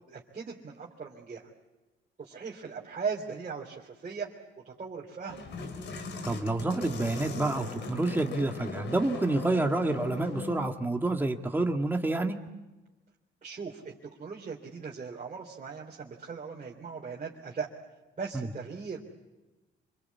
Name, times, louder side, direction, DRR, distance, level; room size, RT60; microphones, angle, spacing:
voice 1, 0.1-1.5 2.2-4.3 4.6-5.4 13.4-13.9 14.2-17.7 18.2-19.0, right 5 dB, 40° right, -2 dB, 3.4 m, -38 dB
sound 1, 5.3-10.7, left 3 dB, 60° left, 3.5 m, -39 dB
voice 2, 6.2-12.4 18.3-18.5, right 2 dB, 10° right, 4 dB, 1.8 m, -28 dB
26.5 x 22.5 x 8.5 m, 1.1 s
cardioid pair, 90°, 20 cm